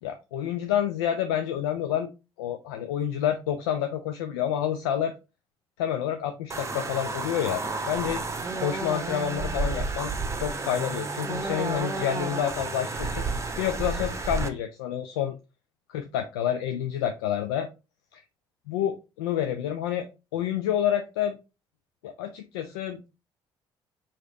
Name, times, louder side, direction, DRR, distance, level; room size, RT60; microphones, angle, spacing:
voice 1, 0.0-2.1 2.4-5.1 5.8-8.2 8.6-13.3 13.6-15.3 15.9-17.7 18.1-18.2 18.7-21.4 22.0-23.0, left 10 dB, 70° left, 7 dB, 0.4 m, -29 dB
sound 1, 6.5-14.5, right 3 dB, 20° right, 0.8 m, -31 dB
4.7 x 2.9 x 3.7 m, 0.29 s
figure-of-eight pair, 45°, 13 cm